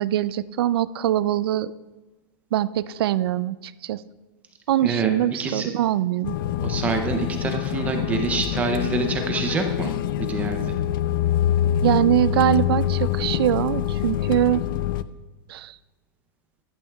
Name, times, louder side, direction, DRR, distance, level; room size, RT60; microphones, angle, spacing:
voice 1, 0.0-1.7 2.5-4.0 4.7-6.3 11.8-14.6 15.5-15.8, right 12 dB, 80° right, 17 dB, 0.4 m, -23 dB
voice 2, 4.8-5.1 5.4-5.7 6.6-10.7, right 4 dB, 10° right, 5 dB, 0.5 m, -26 dB
sound 1, 6.2-15.0, left 10 dB, 65° left, 0.4 m, -25 dB
15.0 x 12.0 x 2.3 m, 1.2 s
supercardioid pair, 175°, 13 cm